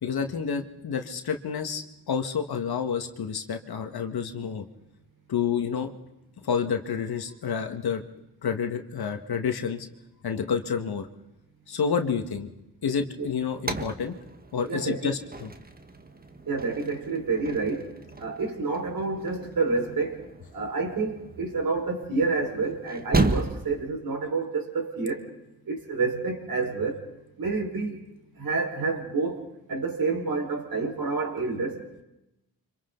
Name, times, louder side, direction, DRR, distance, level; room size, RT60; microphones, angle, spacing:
voice 1, 0.0-4.6 5.3-5.9 6.4-8.0 8.4-9.9 10.2-11.1 11.7-12.5 12.8-14.1 14.5-15.5, left 6 dB, 65° left, 6 dB, 1.9 m, -29 dB
sound 1, 13.2-23.9, right 2 dB, 20° right, 1.5 m, -34 dB
voice 2, 14.7-15.2 16.5-17.9 18.2-20.2 20.5-25.2 25.7-27.0 27.4-28.0 28.4-29.4 29.7-31.9, right 4 dB, 55° right, 2 dB, 5.2 m, -28 dB
30.0 x 25.5 x 4.0 m, 0.91 s
cardioid pair, 60°, 41 cm